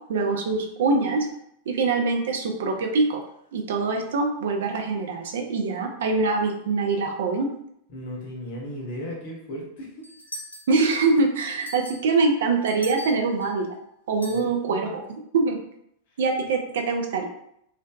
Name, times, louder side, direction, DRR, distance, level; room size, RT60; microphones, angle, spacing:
voice 1, 0.1-1.3 1.7-3.2 3.5-7.5 10.7-13.7 14.1-15.0 15.3-15.6 16.2-17.3, right 3 dB, 60° right, 3 dB, 0.3 m, -24 dB
voice 2, 7.9-10.1 14.3-14.9, equal, 50° left, -1 dB, 0.7 m, -36 dB
sound 1, 10.0-11.2 11.6-13.6 14.2-14.4, equal, 80° left, 0.4 m, -40 dB
2.6 x 2.1 x 2.2 m, 0.74 s
figure-of-eight pair, 90°, 0 cm